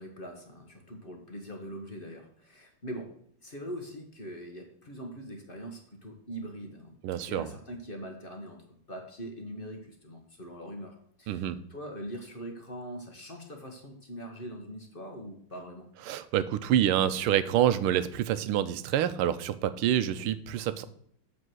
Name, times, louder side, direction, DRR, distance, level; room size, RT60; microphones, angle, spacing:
voice 1, 0.0-3.1 3.4-7.0 7.2-15.9, equal, 30° left, 3 dB, 1.3 m, -42 dB
voice 2, 7.0-7.5 11.3-11.6 16.1-20.8, right 11 dB, 90° right, 13 dB, 1.5 m, -27 dB
7.6 x 6.0 x 6.3 m, 0.65 s
omnidirectional pair, 2.3 m